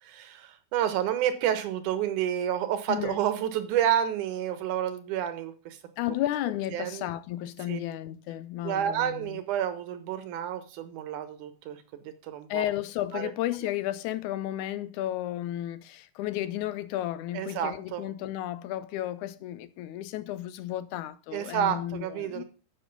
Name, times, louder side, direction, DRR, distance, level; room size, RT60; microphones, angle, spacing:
voice 1, 0.0-5.8 6.7-7.1 7.7-7.8 8.6-12.6 13.1-13.3 17.3-18.0 21.3-22.4, right 10 dB, 75° right, 2.2 m, -30 dB
voice 2, 2.9-3.2 6.0-9.4 12.5-22.4, left 13 dB, 80° left, 1.9 m, -33 dB
7.8 x 6.3 x 5.2 m
omnidirectional pair, 3.8 m